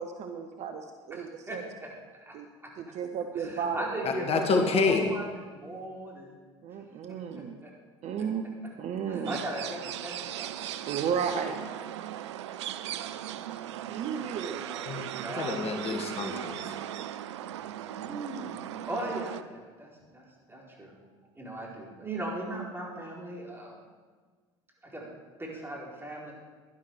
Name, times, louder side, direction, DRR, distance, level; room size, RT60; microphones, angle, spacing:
voice 1, 0.0-1.6 2.3-2.5 2.8-3.9 6.6-7.6 8.0-8.4 8.8-9.4 10.9-11.6 13.9-14.6, right 7 dB, 50° right, 7 dB, 0.9 m, -33 dB
voice 2, 1.1-1.6 2.2-2.3 3.4-6.4 7.1-7.7 9.1-10.8 14.6-15.7 17.9-18.5 18.9-20.9 21.3-23.8 24.8-25.0 25.4-26.3, right 1 dB, 15° right, -3 dB, 4.5 m, -38 dB
voice 3, 4.0-5.0 14.9-15.1 15.4-16.7, left 4 dB, 45° left, 4 dB, 1.5 m, -28 dB
sound 1, 9.2-19.4, right 11 dB, 80° right, 0.5 m, -38 dB
11.5 x 11.5 x 4.8 m, 1.5 s
hypercardioid pair, 65°, 15 cm